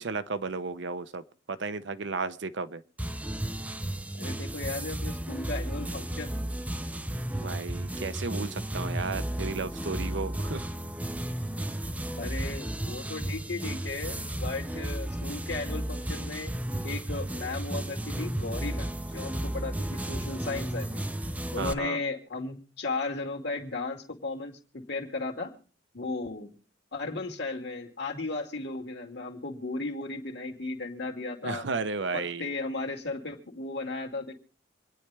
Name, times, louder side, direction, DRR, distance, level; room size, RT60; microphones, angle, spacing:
voice 1, 0.0-2.8 7.4-10.7 21.6-22.0 31.4-32.5, right 4 dB, 65° right, 0.8 m, -34 dB
sound 1, 3.0-21.7, right 1 dB, 10° right, 0.6 m, -33 dB
voice 2, 4.1-6.3 12.2-16.5 16.8-21.0 21.5-25.5 25.9-26.5 26.9-31.7 32.1-34.4, left 3 dB, 60° left, 2.3 m, -35 dB
26.5 x 9.8 x 3.4 m
head